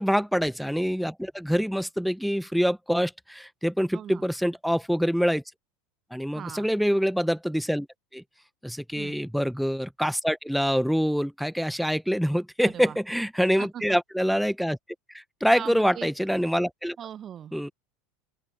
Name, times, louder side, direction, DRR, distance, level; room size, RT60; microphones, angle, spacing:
voice 1, 0.0-5.4 6.1-7.9 8.1-8.2 8.6-14.8 15.1-17.0 17.5-17.7, equal, ahead, 1.3 m, -25 dB
voice 2, 3.9-4.2 6.3-6.7 8.9-9.2 12.6-13.0 13.6-14.0 15.5-16.1 17.0-17.5, right 10 dB, 35° right, 1.3 m, -39 dB
open air
figure-of-eight pair, 75°, 0 cm